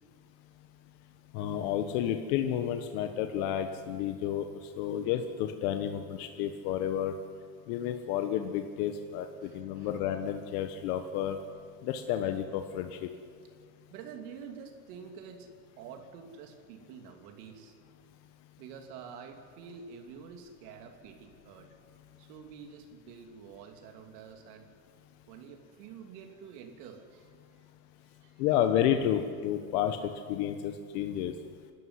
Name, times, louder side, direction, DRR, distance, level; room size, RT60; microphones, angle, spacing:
voice 1, 1.3-7.1 7.7-11.4 11.8-13.1 28.4-31.3, left 10 dB, 70° left, 6 dB, 1.4 m, -31 dB
voice 2, 9.4-9.9 12.8-13.0 13.9-17.7 18.6-21.9 22.2-24.7 25.3-27.4 28.2-28.4, right 6 dB, 80° right, 3 dB, 3.1 m, -48 dB
26.5 x 13.0 x 9.6 m, 2.1 s
cardioid pair, 165°, 46 cm